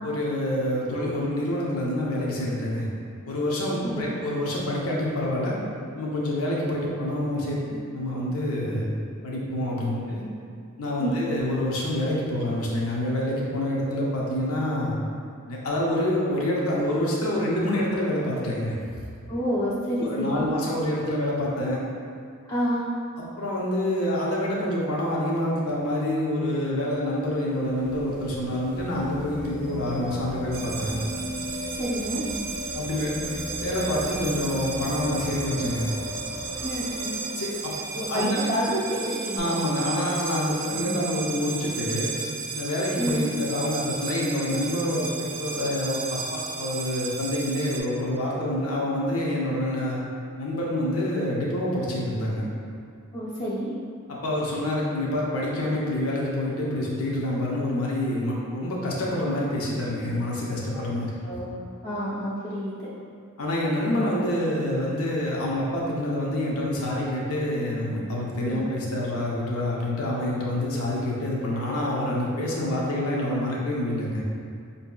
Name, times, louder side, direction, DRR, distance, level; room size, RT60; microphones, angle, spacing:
voice 1, 0.0-2.9 3.3-5.6 5.9-8.9 9.2-10.2 10.8-14.9 15.5-18.7 20.0-21.8 23.2-31.0 32.7-33.1 33.6-35.9 37.3-38.4 39.3-42.1 42.6-50.0 50.4-52.4 54.1-61.1 63.4-74.2, left 1 dB, 75° left, -4 dB, 0.7 m, -27 dB
voice 2, 19.3-20.5 22.5-22.9 31.7-32.2 36.6-37.2 37.9-39.5 40.7-41.0 43.0-43.3 53.1-53.7 60.7-60.8 61.2-61.6 61.8-62.9 68.4-68.7, equal, 20° left, -11 dB, 0.6 m, -29 dB
sound 1, 27.2-38.2 39.4-39.5, left 1 dB, 90° left, 1.1 m, -37 dB
sound 2, 30.5-47.8, right 5 dB, 65° right, 0.5 m, -34 dB
5.1 x 2.7 x 2.3 m, 2.4 s
head